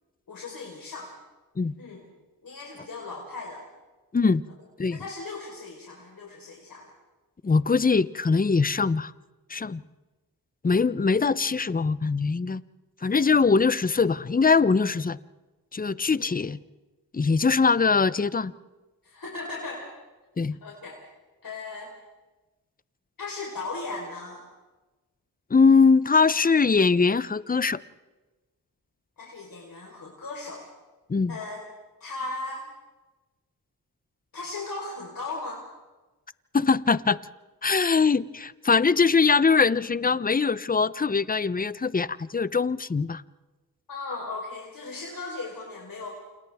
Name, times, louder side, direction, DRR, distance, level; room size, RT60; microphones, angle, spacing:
voice 1, 0.3-1.1 1.8-2.1 2.4-3.6 4.9-6.9 16.2-16.3 19.0-19.9 20.6-21.1 21.4-21.9 23.2-24.4 29.2-30.7 31.3-31.6 32.0-32.7 34.3-35.6 43.9-46.1, left 3 dB, 65° left, 4.3 m, -37 dB
voice 2, 7.4-9.1 9.5-9.8 10.6-12.6 13.0-15.2 15.7-16.6 17.1-18.5 20.4-20.6 25.5-27.8 31.1-31.4 36.5-37.2 37.6-43.2, left 4 dB, 25° left, 0.7 m, -22 dB
28.5 x 28.5 x 3.6 m
cardioid pair, 65°, 36 cm